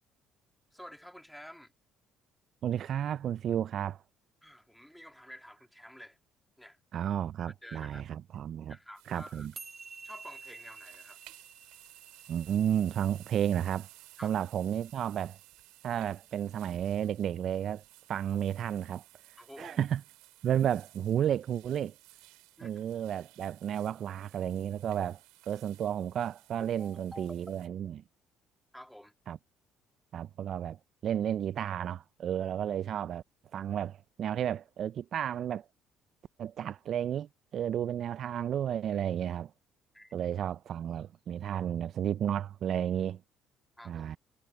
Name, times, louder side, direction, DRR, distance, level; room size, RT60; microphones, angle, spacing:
voice 1, 0.7-1.7 4.4-6.2 6.6-6.8 7.6-8.0 8.7-9.5 10.0-11.2 14.2-14.3 19.4-19.8 22.6-22.8 26.8-27.6 28.7-29.1 39.9-40.1 43.8-44.2, equal, ahead, 2.6 m, -50 dB
voice 2, 2.6-4.0 6.9-8.8 9.1-9.5 12.3-13.9 14.2-15.4 15.8-17.8 18.1-19.0 19.6-20.0 20.4-21.9 22.6-25.2 25.5-28.0 29.3-29.4 30.1-30.8 31.0-33.2 33.5-35.7 36.4-39.5 40.1-43.2 43.9-44.2, right 9 dB, 60° right, 0.3 m, -32 dB
sound 1, 8.9-27.7, right 22 dB, 90° right, 4.5 m, -57 dB
sound 2, 9.6-16.1, right 4 dB, 30° right, 1.2 m, -51 dB
supercardioid pair, 80°, 0 cm